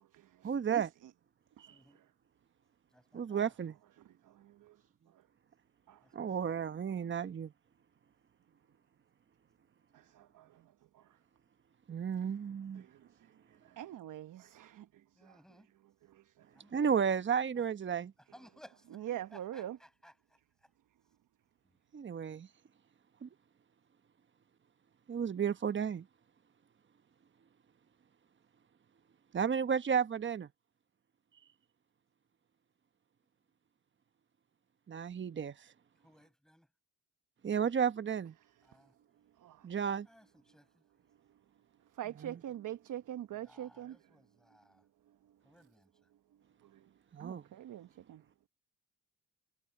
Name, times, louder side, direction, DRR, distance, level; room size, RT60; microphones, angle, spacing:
voice 1, 0.4-0.9 3.1-3.7 6.1-7.5 11.9-12.8 16.7-18.1 21.9-22.5 23.2-23.3 25.1-26.0 29.3-30.5 34.9-35.5 37.4-38.3 39.6-40.1 42.2-42.4 47.1-47.4, right 7 dB, 30° right, 1.0 m, -33 dB
voice 2, 1.7-2.0 2.9-3.5 6.0-6.6 15.1-15.7 16.5-16.9 17.5-17.6 18.2-20.7 21.6-21.8 36.0-36.7 38.6-38.9 40.1-40.8 43.3-44.9 45.4-45.9, equal, ahead, 7.5 m, -61 dB
voice 3, 13.8-14.8 19.0-19.8 39.4-39.6 42.0-44.0 47.2-48.2, right 11 dB, 60° right, 1.0 m, -42 dB
supercardioid pair, 70°, 36 cm